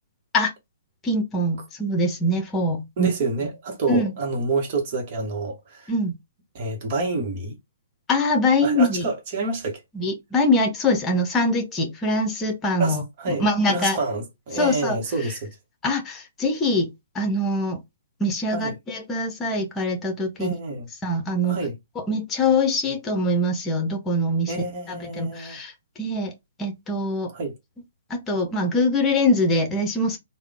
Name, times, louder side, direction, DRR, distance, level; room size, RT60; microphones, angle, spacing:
voice 1, 1.0-3.1 3.9-4.1 5.9-6.1 8.1-9.1 9.9-14.0 14.5-15.0 15.8-17.8 18.2-20.5 21.0-21.6 21.9-24.5 24.9-25.7 26.0-26.3 26.6-27.3 28.1-30.2, left 1 dB, 15° left, 1.0 m, -23 dB
voice 2, 3.0-5.9 6.5-7.5 8.6-9.8 12.8-15.5 18.5-18.7 20.4-20.9 21.4-21.7 24.5-25.6 27.3-27.5, right 3 dB, 40° right, 1.2 m, -28 dB
3.5 x 2.3 x 3.6 m
figure-of-eight pair, 125°, 0 cm